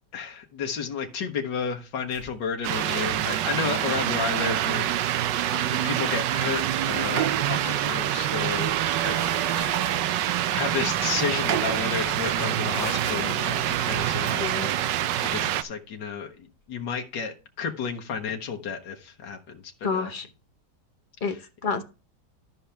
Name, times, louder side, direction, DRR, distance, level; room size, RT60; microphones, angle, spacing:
voice 1, 0.1-4.9 5.2-5.5 5.8-8.8 9.0-9.3 10.5-14.5 15.2-20.1 21.2-21.5, left 6 dB, 90° left, 4 dB, 1.8 m, -32 dB
sound 1, 2.1-2.6 2.9-3.3 6.4-7.7 8.4-10.1 10.8-14.7, equal, 10° right, 3.3 m, -43 dB
sound 2, 2.6-15.6, right 12 dB, 85° right, 1.3 m, -26 dB
voice 2, 14.4-14.7 19.8-20.3 21.2-21.4 21.6-21.8, left 5 dB, 35° left, 7 dB, 0.9 m, -29 dB
13.0 x 5.8 x 3.4 m, 0.31 s
omnidirectional pair, 1.9 m